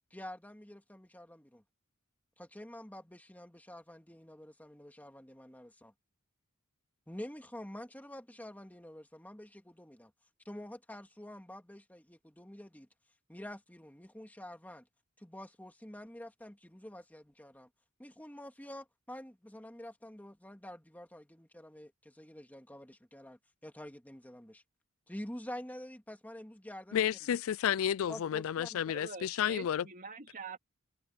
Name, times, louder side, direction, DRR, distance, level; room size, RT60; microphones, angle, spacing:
voice 1, 0.1-1.6 2.4-5.9 7.1-10.1 10.5-12.9 13.3-14.9 15.2-17.7 18.0-24.6 25.1-27.0 28.1-28.8, left 1 dB, 10° left, 2.2 m, -48 dB
voice 2, 26.9-29.9, left 9 dB, 70° left, 0.3 m, -31 dB
voice 3, 28.9-30.6, right 4 dB, 40° right, 3.7 m, -45 dB
head